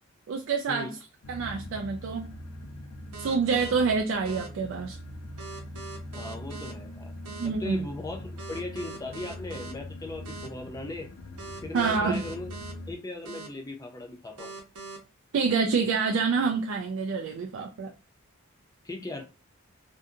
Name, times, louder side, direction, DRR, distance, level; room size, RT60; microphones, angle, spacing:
voice 1, 0.3-0.9 1.3-2.3 3.2-5.0 7.4-7.9 11.7-12.2 15.3-17.9, right 5 dB, 60° right, 0.3 m, -27 dB
sound 1, 1.2-12.9, left 1 dB, 75° left, 0.4 m, -42 dB
sound 2, 3.1-3.7 4.3-4.5 5.4-6.7 7.3-7.5 8.4-9.7 10.3-10.5 11.4-12.7 13.3-13.5 14.4-15.0, right 4 dB, 85° right, 0.7 m, -41 dB
voice 2, 6.1-7.1 7.4-11.1 11.6-12.5 12.9-14.5 18.8-19.2, left 2 dB, 15° left, 0.4 m, -38 dB
2.6 x 2.5 x 2.3 m
head